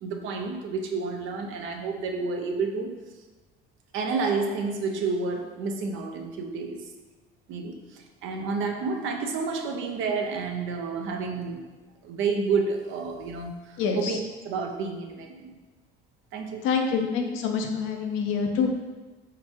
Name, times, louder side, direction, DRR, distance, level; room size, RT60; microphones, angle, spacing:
voice 1, 0.0-2.9 3.9-6.8 7.5-11.6 12.0-14.2 14.4-15.6 16.3-16.6, right 4 dB, 75° right, 4 dB, 0.6 m, -30 dB
voice 2, 13.8-14.2 16.6-18.7, left 5 dB, 85° left, 3 dB, 0.6 m, -26 dB
4.3 x 3.7 x 3.0 m, 1.2 s
cardioid pair, 85°, 20 cm